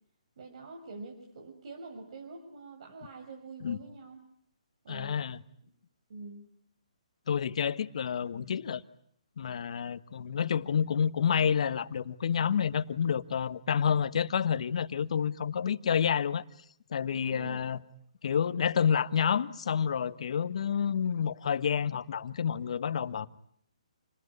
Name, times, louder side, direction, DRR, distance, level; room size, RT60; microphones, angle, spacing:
voice 1, 0.4-4.2 4.8-5.2 6.1-6.5 17.3-17.6, right 3 dB, 55° right, 5.9 m, -45 dB
voice 2, 4.9-5.4 7.3-8.8 9.4-16.4 16.9-17.8 18.2-23.3, left 7 dB, 55° left, 1.5 m, -29 dB
29.0 x 20.5 x 10.0 m
hypercardioid pair, 150°, 4 cm